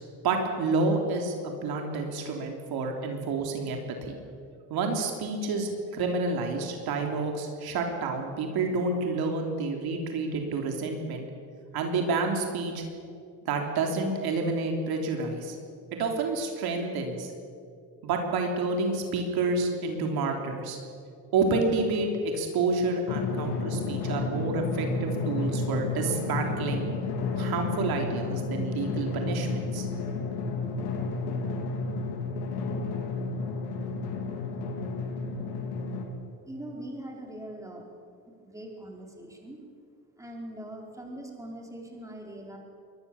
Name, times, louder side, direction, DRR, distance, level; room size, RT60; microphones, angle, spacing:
voice 1, 0.2-4.2 4.7-11.3 11.7-12.8 13.4-15.6 16.0-17.3 18.0-20.8 21.3-26.9 27.4-29.9, right 3 dB, 65° right, 3 dB, 3.4 m, -29 dB
Drum, 23.1-36.0, left 3 dB, 90° left, 3.6 m, -31 dB
voice 2, 36.4-37.9 38.3-39.6 40.2-42.6, right 1 dB, 10° right, 0 dB, 4.6 m, -42 dB
23.0 x 19.5 x 7.1 m, 2.4 s
cardioid pair, 115°, 39 cm